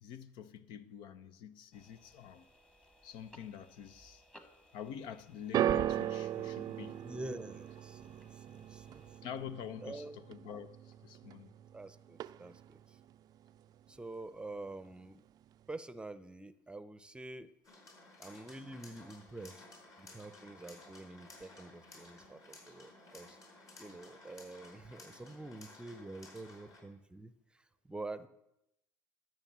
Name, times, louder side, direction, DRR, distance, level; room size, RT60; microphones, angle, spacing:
voice 1, 0.0-2.4 3.0-4.2 4.7-7.0 9.2-11.5, left 8 dB, 70° left, 0.8 m, -47 dB
sound 1, 1.7-9.2, equal, 10° left, 1.6 m, -63 dB
sound 2, 5.5-11.8 12.1-12.7 13.5-13.6, right 11 dB, 50° right, 0.4 m, -37 dB
voice 2, 7.0-9.0 9.8-10.2 11.7-13.0 13.9-15.2 15.7-17.5 18.2-19.6 20.0-23.4 23.8-27.3 27.8-28.3, right 2 dB, 10° right, 0.7 m, -47 dB
sound 3, 17.6-26.8, left 2 dB, 40° left, 5.0 m, -56 dB
13.0 x 6.4 x 7.4 m
supercardioid pair, 85°, 9 cm